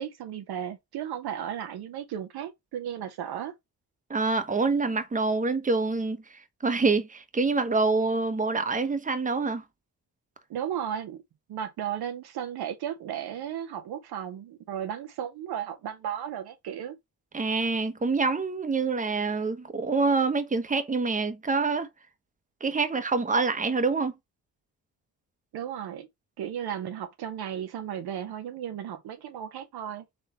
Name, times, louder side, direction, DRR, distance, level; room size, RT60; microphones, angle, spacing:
voice 1, 0.0-3.5 10.5-11.2 11.5-17.0 25.5-26.1 26.4-30.0, right 9 dB, 60° right, 0.8 m, -35 dB
voice 2, 4.1-6.2 6.6-9.6 17.3-21.9 22.6-24.1, right 4 dB, 15° right, 1.0 m, -26 dB
4.2 x 3.2 x 4.0 m
hypercardioid pair, 45°, 45 cm